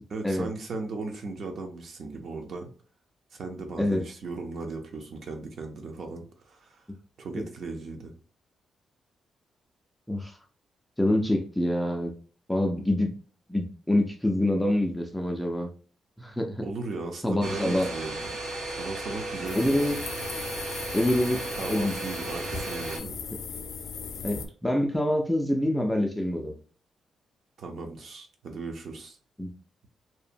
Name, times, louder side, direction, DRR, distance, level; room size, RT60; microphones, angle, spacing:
voice 1, 0.1-2.7 3.3-6.9 7.2-8.1 16.6-18.2 18.7-19.9 21.5-23.2 27.6-29.2, right 3 dB, 50° right, 4 dB, 0.5 m, -37 dB
voice 2, 11.0-12.1 12.5-13.1 13.5-15.7 16.2-16.6 17.2-17.9 19.5-20.0 20.9-22.0 24.2-26.6 29.4-29.5, left 1 dB, 5° left, 3 dB, 0.3 m, -26 dB
Domestic sounds home sounds, 17.4-23.0, right 2 dB, 80° right, 1.5 m, -35 dB
sound 1, 19.4-24.5, left 5 dB, 90° left, 0.3 m, -38 dB
2.7 x 2.1 x 2.5 m, 0.40 s
wide cardioid pair, 165°, 0 cm